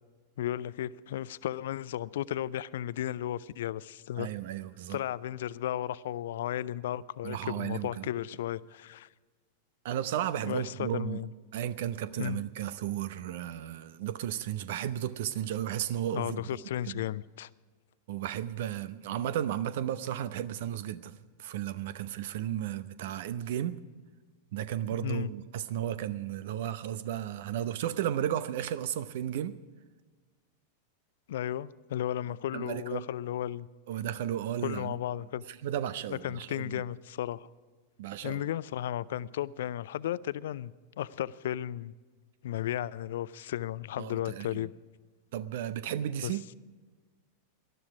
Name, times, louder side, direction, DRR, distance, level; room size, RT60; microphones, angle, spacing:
voice 1, 0.4-4.3 4.9-9.1 10.5-11.3 12.2-12.4 16.1-17.5 25.0-25.3 31.3-33.7 34.6-35.4 36.1-37.5 38.2-41.9 42.4-44.7 46.2-46.3, left 12 dB, 55° left, 0.4 m, -34 dB
voice 2, 4.2-5.0 7.2-8.1 9.8-11.2 11.5-16.4 16.9-17.0 18.1-21.1 21.4-23.8 24.5-29.5 32.5-33.1 33.9-35.0 35.5-36.8 38.0-38.4 44.0-44.7 45.3-46.4, right 11 dB, 55° right, 0.8 m, -34 dB
19.0 x 12.5 x 4.9 m
figure-of-eight pair, 90°, 0 cm